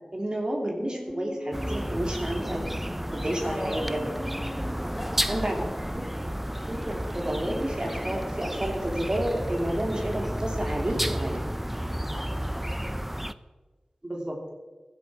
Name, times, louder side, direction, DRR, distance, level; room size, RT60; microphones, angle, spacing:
voice 1, 0.1-2.7 3.1-4.0 5.3-5.6 6.7-11.4 14.0-14.3, right 1 dB, 35° right, 0 dB, 2.8 m, -30 dB
sound 1, 0.8-6.6, left 1 dB, 45° left, 2.5 m, -42 dB
sound 2, 1.5-13.3, equal, 10° right, 0.6 m, -32 dB
voice 2, 3.4-3.8 4.7-5.8 12.1-13.0, left 1 dB, 30° left, 1 dB, 3.6 m, -40 dB
15.5 x 11.5 x 4.9 m, 1.3 s
cardioid pair, 40°, 2 cm